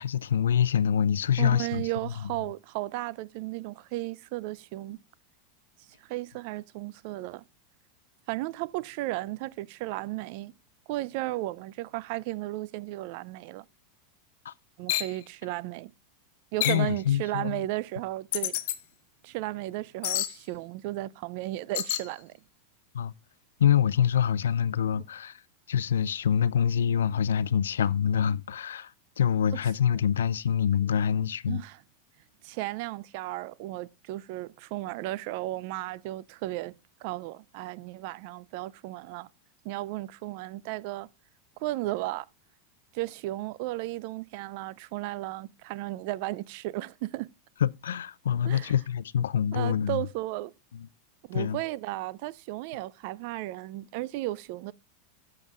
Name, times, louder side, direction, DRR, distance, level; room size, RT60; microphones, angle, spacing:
voice 1, 0.0-1.8 14.5-14.6 16.7-17.6 22.9-23.1 23.6-25.3 25.7-28.9 29.2-31.6 47.6-50.1 51.3-51.6, left 8 dB, 85° left, 0.4 m, -25 dB
voice 2, 1.4-5.0 6.0-7.4 8.3-10.5 10.9-13.6 14.8-15.9 16.5-18.6 19.2-22.3 29.9-30.0 31.5-31.8 32.4-36.7 37.0-39.3 39.6-41.1 41.6-42.3 42.9-47.3 48.4-48.7 49.5-50.5 51.3-54.7, right 17 dB, 60° right, 0.4 m, -34 dB
sound 1, 14.9-15.1 16.6-16.9 18.3-18.8 20.0-20.3 21.7-22.1, left 14 dB, 65° left, 0.9 m, -28 dB
13.5 x 7.7 x 2.4 m
hypercardioid pair, 105°, 0 cm